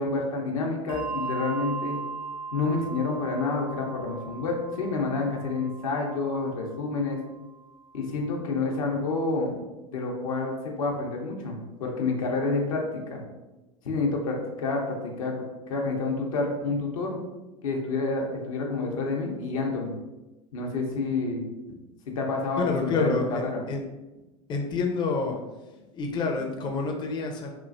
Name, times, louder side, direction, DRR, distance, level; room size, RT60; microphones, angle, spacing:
voice 1, 0.0-2.0 2.5-7.2 7.9-9.5 9.9-12.8 13.1-13.2 13.8-15.3 15.7-17.2 17.6-19.9 20.5-21.4 22.1-23.6, left 3 dB, 80° left, 0 dB, 0.7 m, -28 dB
Bell, 0.9-7.8, right 4 dB, 85° right, 0.5 m, -38 dB
voice 2, 22.6-23.8 24.5-25.4 25.9-27.5, left 4 dB, 25° left, 2 dB, 0.4 m, -28 dB
3.0 x 2.5 x 2.5 m, 1.1 s
hypercardioid pair, 90°, 17 cm